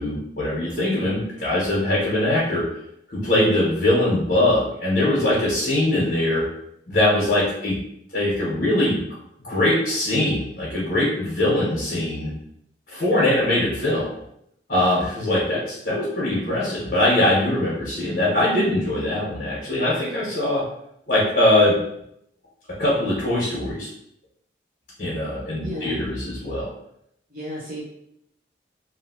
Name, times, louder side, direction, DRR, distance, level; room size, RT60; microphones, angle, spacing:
voice 1, 0.0-2.6 3.1-6.4 6.9-7.7 8.1-9.0 9.4-12.3 12.9-14.1 14.7-20.6 21.1-21.8 22.8-23.9 25.0-26.7, left 1 dB, 50° left, -8 dB, 1.2 m, -22 dB
voice 2, 25.6-26.0 27.3-27.8, equal, 50° right, -8 dB, 0.7 m, -33 dB
3.0 x 2.7 x 2.8 m, 0.74 s
head